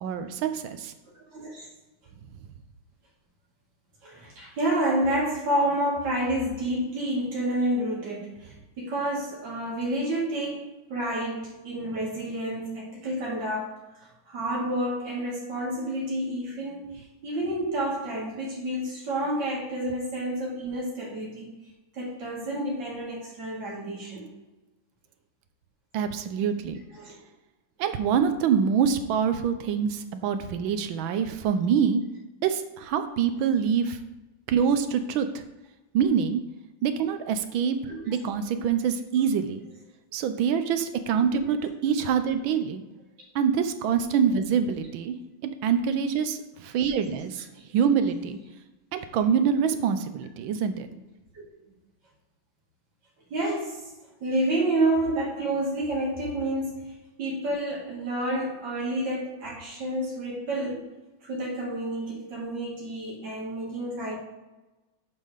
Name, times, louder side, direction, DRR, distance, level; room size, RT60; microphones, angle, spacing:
voice 1, 0.0-0.9 25.9-26.8 27.8-32.0 32.4-34.0 34.5-35.3 35.9-36.4 36.8-37.8 38.1-39.6 40.1-42.8 43.3-45.2 45.4-47.4 47.7-48.4 48.9-50.9, right 7 dB, 85° right, 9 dB, 1.5 m, -25 dB
voice 2, 1.3-1.7 4.0-13.7 14.0-21.5 21.9-24.3 26.9-27.1 37.9-38.1 38.5-38.7 41.3-41.4 42.4-42.5 47.1-47.2 51.3-51.4 53.3-53.9 54.2-56.8 57.2-60.9 61.2-64.2, right 1 dB, 65° right, -5 dB, 2.7 m, -29 dB
7.8 x 3.7 x 6.4 m, 1.1 s
omnidirectional pair, 2.1 m